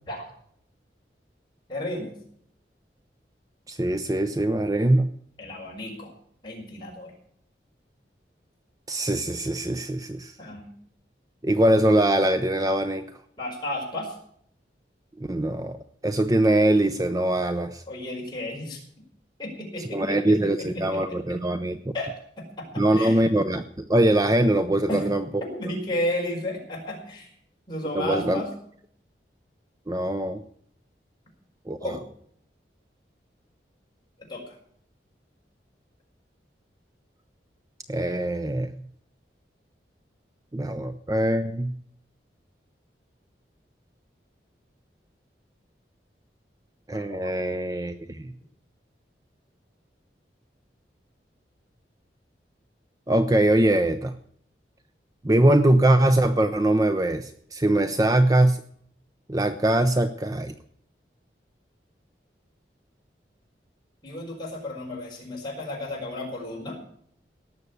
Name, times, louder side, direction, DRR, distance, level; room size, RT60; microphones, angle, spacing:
voice 1, 1.7-2.1 5.4-6.1 6.4-7.1 10.4-10.7 13.4-14.1 17.9-18.8 19.4-21.2 21.9-22.1 22.4-23.3 24.9-25.1 25.5-27.3 27.7-28.5 31.8-32.0 34.2-34.6 46.9-47.4 64.0-66.8, left 1 dB, 25° left, -2 dB, 5.0 m, -33 dB
voice 2, 3.7-5.1 8.9-10.3 11.4-13.1 15.2-15.8 16.0-17.8 19.9-21.8 22.8-25.2 27.9-28.4 29.9-30.4 31.7-32.0 37.9-38.7 40.5-41.7 46.9-48.3 53.1-54.1 55.2-58.6 59.3-60.5, right 1 dB, 20° right, 9 dB, 0.6 m, -22 dB
18.0 x 6.8 x 8.3 m, 0.64 s
head